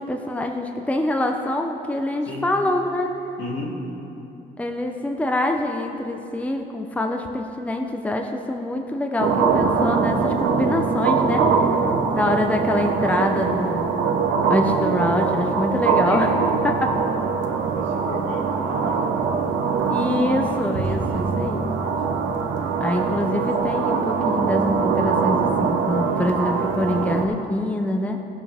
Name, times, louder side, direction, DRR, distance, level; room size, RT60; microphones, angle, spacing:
voice 1, 0.0-3.1 4.6-11.8 12.1-13.9 14.5-16.3 16.8-16.9 19.9-21.6 22.8-28.2, left 1 dB, 5° left, 4 dB, 0.7 m, -25 dB
voice 2, 3.4-3.7 12.2-12.3 16.0-16.3 17.7-18.8, left 2 dB, 70° left, -4 dB, 2.7 m, -32 dB
sound 1, 9.2-27.3, right 5 dB, 90° right, 1.0 m, -22 dB
17.0 x 7.0 x 3.6 m, 2.9 s
cardioid pair, 90°, 20 cm